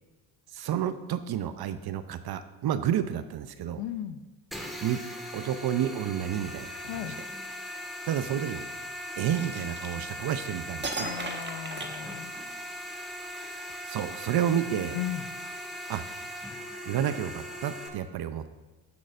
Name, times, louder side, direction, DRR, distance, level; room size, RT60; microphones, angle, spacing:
voice 1, 0.5-3.8 4.8-5.0 5.3-7.1 8.0-8.6 9.2-11.1 13.9-15.0 15.9-16.0 16.9-18.5, right 10 dB, 55° right, 11 dB, 0.6 m, -30 dB
voice 2, 3.8-4.2 6.9-7.2 11.0-12.3 14.9-15.3, left 11 dB, 65° left, 11 dB, 0.7 m, -36 dB
sound 1, 4.5-17.9, equal, ahead, 1.6 m, -39 dB
sound 2, 9.3-10.4 10.8-12.7, right 3 dB, 25° right, 1.5 m, -37 dB
16.5 x 6.2 x 2.5 m, 1.3 s
hypercardioid pair, 55°, 47 cm